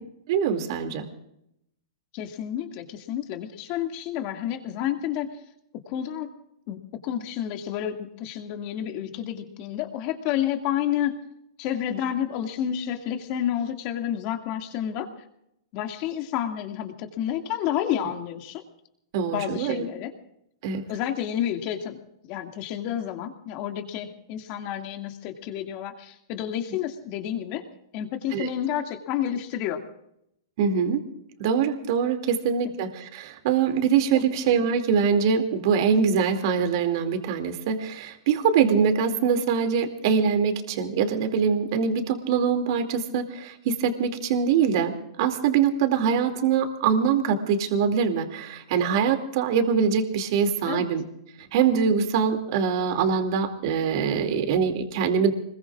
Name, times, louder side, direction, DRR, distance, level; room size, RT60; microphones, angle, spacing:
voice 1, 0.3-1.1 19.1-19.9 20.6-20.8 28.3-28.5 30.6-31.0 31.4-51.0 51.5-55.3, right 6 dB, 55° right, 5 dB, 2.6 m, -23 dB
voice 2, 2.1-5.3 5.9-6.3 6.7-11.2 11.6-15.1 15.7-18.6 19.3-20.1 20.9-22.0 22.3-27.6 27.9-29.8 34.1-34.2 50.6-50.9, left 10 dB, 40° left, 4 dB, 2.2 m, -30 dB
26.0 x 21.5 x 2.5 m, 0.77 s
hypercardioid pair, 140°, 3 cm